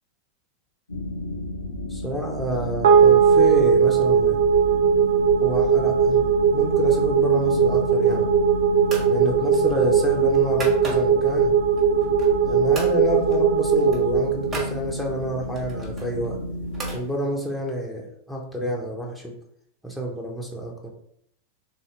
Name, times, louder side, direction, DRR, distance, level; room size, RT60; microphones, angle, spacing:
sound 1, 0.9-17.0, left 1 dB, 75° left, 0.4 m, -32 dB
voice 1, 1.9-4.4 5.4-6.2 6.5-8.3 9.1-11.6 12.4-16.4 16.9-19.3 19.8-20.9, equal, ahead, -2 dB, 0.7 m, -28 dB
sound 2, 2.8-15.4, right 7 dB, 60° right, 0.6 m, -19 dB
sound 3, 7.9-8.4 8.8-9.2 9.5-11.3 11.8-12.5 12.7-13.0 13.3-13.4 13.7-14.8 15.5-17.0, right 3 dB, 25° right, 1.3 m, -37 dB
3.5 x 2.7 x 3.1 m, 0.70 s
figure-of-eight pair, 90°, 0 cm